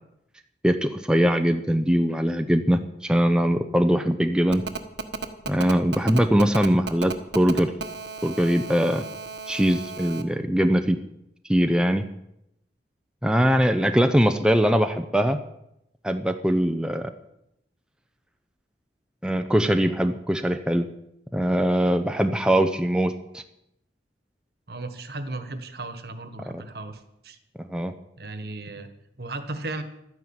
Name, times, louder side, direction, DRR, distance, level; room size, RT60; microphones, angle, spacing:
voice 1, 0.6-4.6 5.5-7.7 8.2-9.0 9.5-11.0 11.5-12.1 13.2-15.4 16.0-17.1 19.2-20.9 21.3-23.4 27.6-27.9, equal, 5° right, 6 dB, 0.7 m, -22 dB
Telephone, 4.5-10.2, right 4 dB, 80° right, 1.4 m, -34 dB
voice 2, 24.7-27.4 28.2-28.9 29.2-29.8, right 2 dB, 60° right, 10 dB, 1.5 m, -35 dB
12.0 x 9.9 x 8.9 m, 0.81 s
head